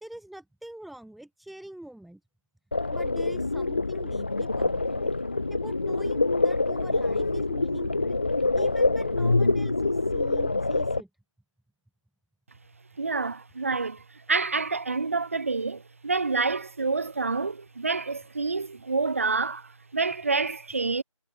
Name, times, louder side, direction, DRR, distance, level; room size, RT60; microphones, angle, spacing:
voice 1, 0.0-2.2 2.9-5.1 5.5-8.2 8.5-11.1, right 1 dB, ahead, 3.2 m, -44 dB
sound 1, 2.7-11.0, left 3 dB, 20° left, 0.8 m, -26 dB
voice 2, 13.0-21.0, right 4 dB, 25° right, 1.2 m, -28 dB
figure-of-eight pair, 175°, 17 cm